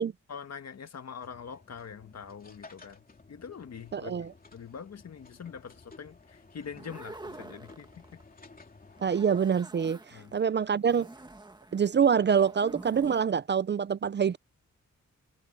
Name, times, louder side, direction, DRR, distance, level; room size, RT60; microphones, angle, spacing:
voice 1, 0.3-8.2 10.1-10.3, left 6 dB, 60° left, 1.7 m, -44 dB
sound 1, 1.2-9.2, left 3 dB, 30° left, 2.9 m, -55 dB
voice 2, 3.9-4.3 9.0-11.1 11.7-14.4, right 7 dB, 40° right, 0.4 m, -26 dB
sound 2, 6.6-8.3 8.9-10.4 10.9-13.2, right 2 dB, 15° right, 1.8 m, -47 dB
wide cardioid pair, 140°, 30 cm